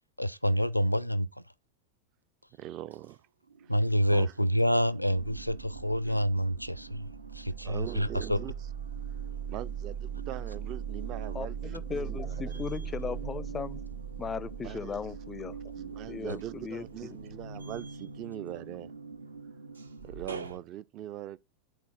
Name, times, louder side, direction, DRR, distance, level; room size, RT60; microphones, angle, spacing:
voice 1, 0.2-1.3 3.7-7.1 7.3-8.4 16.3-16.4, equal, 90° left, 0.5 m, -27 dB
voice 2, 2.6-3.2 4.1-4.3 7.6-8.5 9.5-12.5 14.6-15.0 15.7-18.9 20.0-21.4, right 13 dB, 40° right, 0.4 m, -41 dB
sound 1, 3.5-4.3 4.7-20.6, right 6 dB, 75° right, 0.9 m, -40 dB
voice 3, 11.3-13.8 14.2-15.6 16.1-17.1, left 6 dB, 20° left, 0.4 m, -37 dB
10.5 x 4.3 x 5.8 m
figure-of-eight pair, 90°, 0 cm